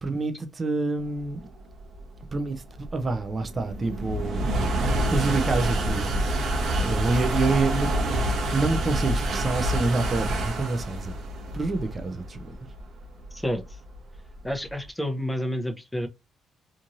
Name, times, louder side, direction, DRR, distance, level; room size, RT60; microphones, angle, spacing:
voice 1, 0.0-1.5 2.3-4.5 5.1-6.2 6.8-8.2 8.5-11.2 11.5-12.5, right 3 dB, 30° right, 0.5 m, -27 dB
sound 1, 1.4-14.7, right 1 dB, 70° right, 1.0 m, -27 dB
voice 2, 13.3-13.8 14.4-16.1, equal, 5° left, 0.7 m, -30 dB
3.0 x 2.5 x 2.5 m
cardioid pair, 90°, 0 cm